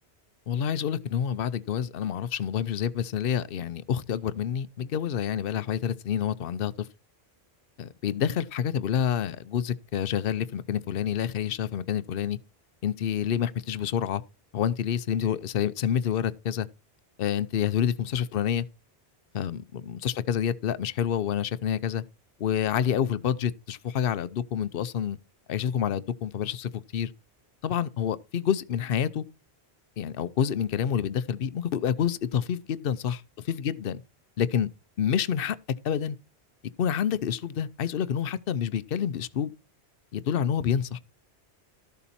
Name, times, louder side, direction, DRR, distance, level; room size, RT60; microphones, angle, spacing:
voice 1, 0.5-6.9 7.8-12.4 12.8-14.2 14.5-16.7 17.2-18.7 19.3-22.0 22.4-25.2 25.5-27.1 27.6-29.2 30.0-33.2 33.5-34.0 34.4-34.7 35.0-35.6 35.8-36.2 36.8-39.5 40.1-41.0, left 9 dB, 65° left, 0.9 m, -28 dB
13.0 x 7.0 x 4.3 m
omnidirectional pair, 1.1 m